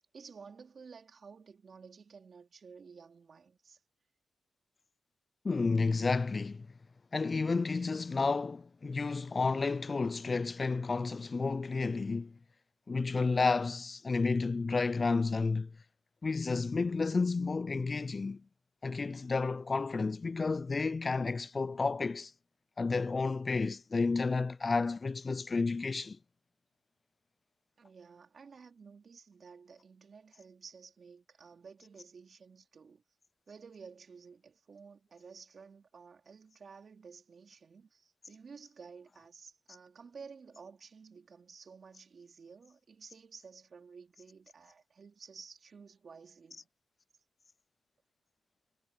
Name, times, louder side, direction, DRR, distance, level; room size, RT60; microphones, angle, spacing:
voice 1, 0.0-3.8 27.8-33.0 33.5-46.7, right 5 dB, 55° right, 3.9 m, -53 dB
voice 2, 5.4-6.7 7.1-12.3 12.9-15.7 16.2-18.4 18.8-22.3 22.8-26.2, left 4 dB, 40° left, 0.3 m, -31 dB
cardioid pair, 60°, 0 cm